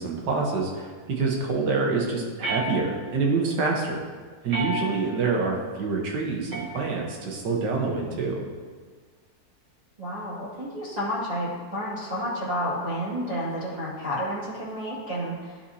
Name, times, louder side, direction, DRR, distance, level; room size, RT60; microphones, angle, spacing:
voice 1, 0.0-4.0 4.4-8.4, right 4 dB, 85° right, 0 dB, 1.7 m, -26 dB
sound 1, 2.4-3.3 4.5-5.3 6.5-7.3, right 1 dB, 60° right, 1.5 m, -33 dB
voice 2, 10.0-15.6, equal, 25° right, -9 dB, 1.7 m, -30 dB
11.5 x 4.2 x 2.8 m, 1.5 s
omnidirectional pair, 1.8 m